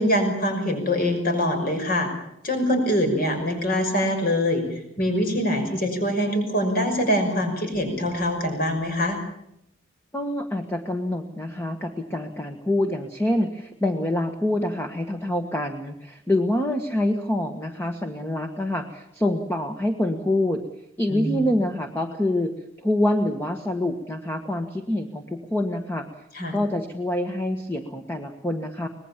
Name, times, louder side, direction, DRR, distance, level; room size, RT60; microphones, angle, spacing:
voice 1, 0.0-2.1 2.4-9.2 21.1-21.4 26.3-26.6, equal, 45° left, 5 dB, 5.9 m, -24 dB
voice 2, 10.1-20.6 21.0-22.5 22.8-26.0 26.5-28.9, left 1 dB, 10° left, 5 dB, 1.4 m, -26 dB
24.5 x 20.0 x 7.3 m, 0.78 s
head